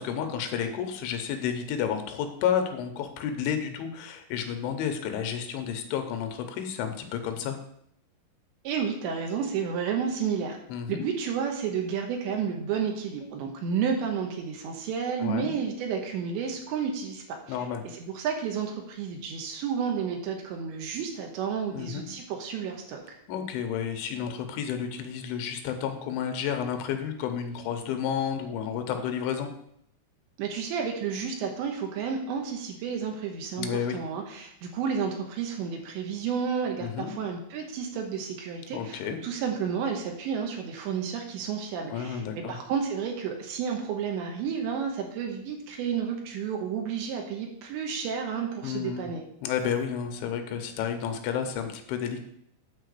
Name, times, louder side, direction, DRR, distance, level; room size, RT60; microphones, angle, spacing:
voice 1, 0.0-7.6 10.7-11.1 15.2-15.6 17.5-17.8 21.7-22.1 23.3-29.5 33.6-34.0 36.8-37.1 38.7-39.2 41.9-42.6 48.6-49.1 49.4-52.2, left 8 dB, 80° left, 6 dB, 3.3 m, -31 dB
voice 2, 8.6-10.6 10.9-17.6 17.9-23.2 30.4-33.7 33.9-49.2, right 7 dB, 75° right, 2 dB, 3.2 m, -31 dB
9.4 x 4.4 x 6.6 m, 0.71 s
omnidirectional pair, 5.4 m